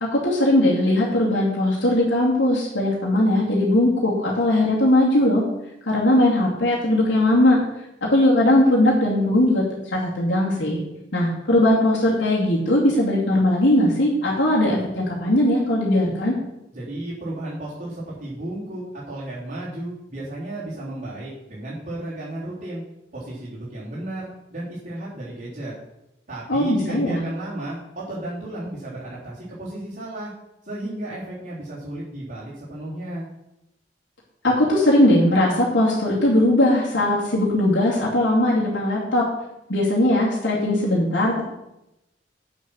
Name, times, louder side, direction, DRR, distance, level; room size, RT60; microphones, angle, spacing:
voice 1, 0.0-5.4 5.9-7.6 8.0-9.6 9.9-10.8 11.1-16.3 26.5-27.2 34.4-39.3 39.7-41.4, left 1 dB, 80° left, -5 dB, 2.4 m, -19 dB
voice 2, 16.7-22.8 23.1-25.7 26.3-30.3 30.6-33.3, right 1 dB, 55° right, -11 dB, 3.6 m, -33 dB
8.5 x 6.4 x 6.3 m, 0.89 s
head